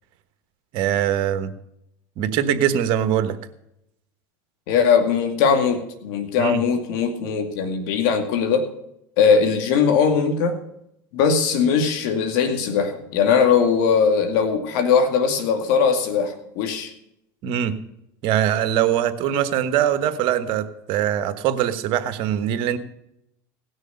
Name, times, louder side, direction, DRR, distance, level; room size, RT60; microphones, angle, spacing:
voice 1, 0.7-1.5 2.2-3.4 6.4-6.6 17.4-17.8 18.2-22.8, right 10 dB, 60° right, 11 dB, 1.2 m, -22 dB
voice 2, 4.7-8.7 9.2-10.6 11.1-16.9, left 6 dB, 70° left, 7 dB, 2.2 m, -20 dB
17.5 x 6.4 x 6.7 m, 0.79 s
supercardioid pair, 110°, 10 cm